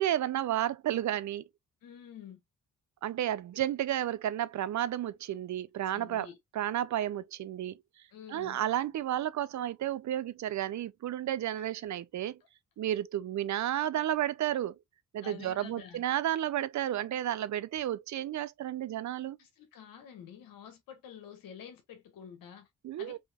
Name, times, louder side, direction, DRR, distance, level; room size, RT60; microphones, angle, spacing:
voice 1, 0.0-1.5 3.0-6.3 6.5-7.8 8.3-12.4 12.8-14.8 15.1-19.4 22.8-23.2, right 12 dB, 60° right, 0.5 m, -32 dB
voice 2, 1.8-2.4 5.9-6.4 8.1-8.6 11.6-11.7 15.2-16.0 19.4-22.7 23.0-23.2, left 8 dB, 90° left, 1.5 m, -49 dB
5.4 x 2.8 x 2.3 m
cardioid pair, 65°, 33 cm